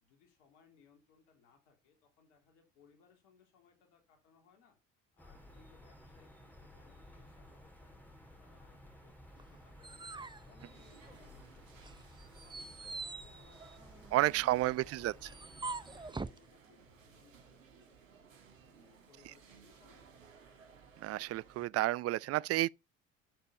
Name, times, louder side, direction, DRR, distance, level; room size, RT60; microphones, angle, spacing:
voice 1, 0.0-4.8 5.1-10.1 10.4-12.0 12.4-14.8 15.8-20.5, left 6 dB, 70° left, 3.5 m, -67 dB
sound 1, 5.2-16.1, left 1 dB, 5° left, 4.2 m, -56 dB
sound 2, 9.4-11.4 11.8-16.4, right 3 dB, 10° right, 0.8 m, -45 dB
sound 3, 10.6-21.7, right 6 dB, 85° right, 2.4 m, -60 dB
voice 2, 14.1-15.3 21.0-22.7, right 17 dB, 40° right, 0.4 m, -31 dB
10.0 x 6.8 x 5.6 m
hypercardioid pair, 60°, 38 cm